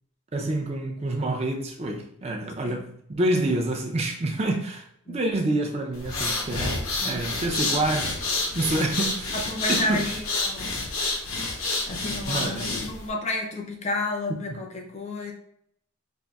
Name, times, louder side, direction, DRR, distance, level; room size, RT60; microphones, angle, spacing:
voice 1, 0.3-8.2 8.5-9.4 9.7-10.0 12.3-12.8 14.5-14.6, right 2 dB, 30° right, 0.5 m, -27 dB
sound 1, 5.9-13.1, left 3 dB, 80° left, 0.8 m, -29 dB
voice 2, 7.0-7.3 9.3-10.9 11.9-15.3, left 2 dB, 30° left, 0.5 m, -31 dB
5.2 x 2.6 x 2.3 m
head